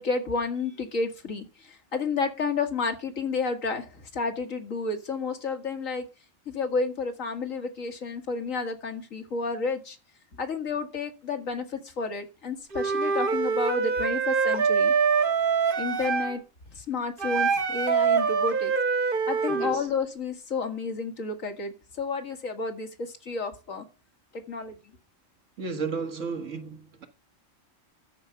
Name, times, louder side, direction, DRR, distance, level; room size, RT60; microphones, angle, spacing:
voice 1, 0.0-1.5 1.9-6.1 6.5-10.0 10.4-14.9 15.8-16.4 16.8-18.7 19.3-23.8 24.5-24.8, left 4 dB, 80° left, 2.2 m, -31 dB
Wind instrument woodwind instrument, 12.7-16.4 17.2-19.8, right 5 dB, 45° right, 1.2 m, -24 dB
voice 2, 19.5-19.9 25.6-27.1, right 5 dB, 70° right, 1.7 m, -33 dB
13.0 x 4.9 x 6.8 m
omnidirectional pair, 1.3 m